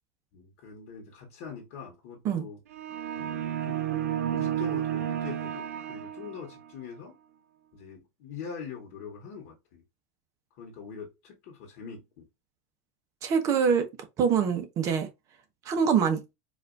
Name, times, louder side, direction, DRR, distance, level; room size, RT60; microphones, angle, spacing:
voice 1, 0.3-2.6 3.1-3.9 4.3-7.2 7.7-9.8 10.6-12.3, left 6 dB, 60° left, 1.2 m, -43 dB
sound 1, 2.7-6.7, right 10 dB, 80° right, 0.4 m, -32 dB
voice 2, 13.2-13.9 14.2-15.1 15.6-16.2, right 6 dB, 45° right, 1.0 m, -24 dB
4.0 x 2.6 x 2.5 m
hypercardioid pair, 100°, 8 cm